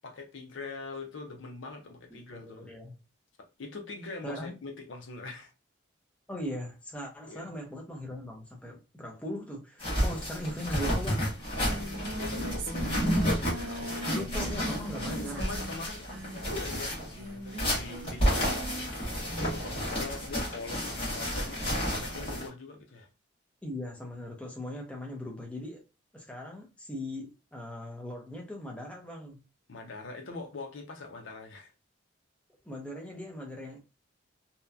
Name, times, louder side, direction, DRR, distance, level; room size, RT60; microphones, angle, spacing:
voice 1, 0.0-2.7 3.6-5.5 7.2-7.5 12.2-14.1 15.2-18.7 19.4-23.1 29.7-31.7, left 3 dB, 75° left, 0.6 m, -43 dB
voice 2, 2.3-2.9 4.2-4.6 6.3-11.3 14.0-15.5 23.6-25.8 26.1-29.4 32.6-33.8, left 1 dB, 5° left, 0.6 m, -39 dB
sound 1, 9.8-22.5, equal, 25° left, 1.2 m, -31 dB
Singing, 11.0-11.1 11.3-19.0, right 1 dB, 75° right, 0.6 m, -41 dB
2.8 x 2.2 x 2.3 m
head